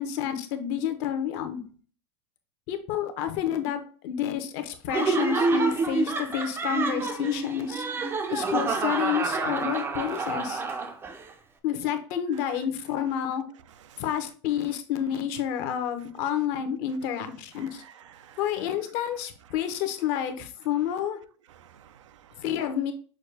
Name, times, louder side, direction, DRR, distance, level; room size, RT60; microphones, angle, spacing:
voice 1, 0.0-1.6 2.7-7.8 8.3-10.6 11.6-13.4 14.0-17.8 18.4-21.2 22.4-22.9, left 9 dB, 50° left, 0.8 m, -29 dB
Laughter, 4.9-11.2, right 4 dB, 15° right, 0.5 m, -28 dB
voice 2, 17.6-18.6 21.5-22.4, right 9 dB, 85° right, 0.5 m, -53 dB
6.2 x 2.3 x 3.3 m
supercardioid pair, 135°, 15 cm